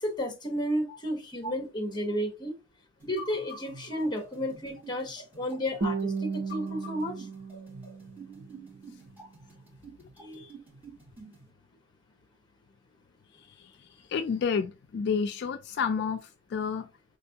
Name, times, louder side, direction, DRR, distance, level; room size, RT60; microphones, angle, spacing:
voice 1, 0.0-2.5 3.0-7.3 10.2-10.5, equal, 25° left, 1.1 m, -32 dB
sound 1, 3.0-11.5, right 1 dB, 10° right, 2.8 m, -49 dB
Guitar, 5.8-8.8, right 4 dB, 45° right, 0.8 m, -35 dB
voice 2, 13.4-16.9, left 6 dB, 60° left, 0.3 m, -31 dB
4.3 x 3.4 x 2.8 m
head